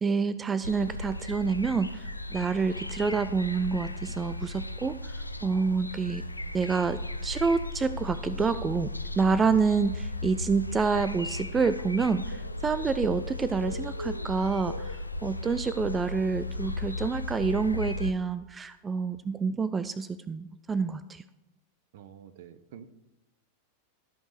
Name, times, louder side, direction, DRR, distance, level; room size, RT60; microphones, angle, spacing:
voice 1, 0.0-6.2 6.5-21.2, right 5 dB, 15° right, 13 dB, 0.4 m, -28 dB
sound 1, 0.6-18.1, left 2 dB, 85° left, 0.5 m, -36 dB
voice 2, 21.9-22.9, right 9 dB, 55° right, 13 dB, 0.8 m, -48 dB
14.0 x 5.4 x 6.4 m, 1.0 s
figure-of-eight pair, 90°, 0 cm